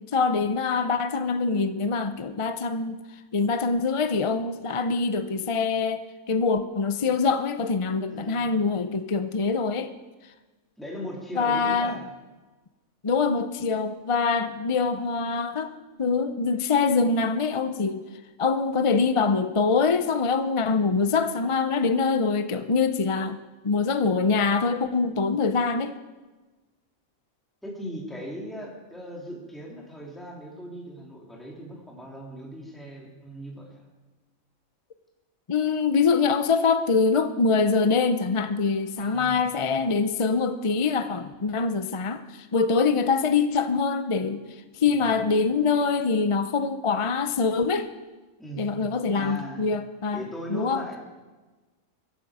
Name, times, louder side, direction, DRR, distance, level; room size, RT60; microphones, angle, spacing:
voice 1, 0.1-3.0 3.3-9.9 11.4-12.0 13.0-15.7 16.0-18.0 18.4-23.4 23.6-26.0 35.5-44.4 44.8-47.9 48.6-50.8, left 4 dB, 35° left, 10 dB, 0.5 m, -24 dB
voice 2, 8.1-8.5 10.8-12.1 27.6-33.8 39.0-39.6 44.8-45.1 48.4-48.7 49.1-49.6 50.1-51.0, equal, ahead, -2 dB, 2.8 m, -39 dB
22.5 x 12.5 x 4.9 m, 1.2 s
omnidirectional pair, 1.4 m